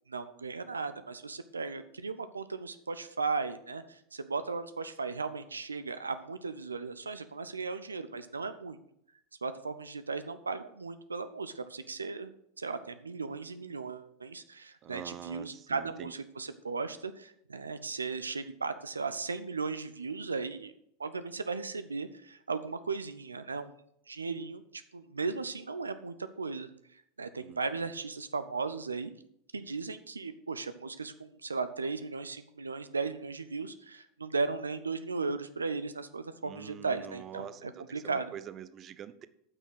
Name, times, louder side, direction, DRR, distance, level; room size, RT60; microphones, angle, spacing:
voice 1, 0.1-8.8 9.4-12.3 12.6-20.7 21.0-23.7 24.1-29.1 29.5-38.3, right 4 dB, 85° right, 11 dB, 0.5 m, -36 dB
voice 2, 14.8-16.1 27.4-27.6 36.4-39.3, right 9 dB, 35° right, 14 dB, 0.6 m, -45 dB
9.1 x 6.2 x 6.3 m, 0.73 s
figure-of-eight pair, 85°, 0 cm